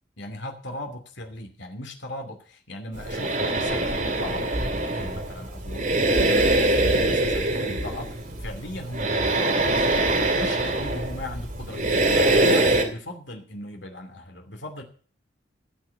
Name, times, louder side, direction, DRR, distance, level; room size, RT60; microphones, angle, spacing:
voice 1, 0.2-10.0 10.3-14.8, left 1 dB, 75° left, 4 dB, 2.7 m, -38 dB
sound 1, 2.9-12.8, right 2 dB, 45° right, 2.3 m, -23 dB
16.5 x 6.6 x 7.8 m, 0.43 s
head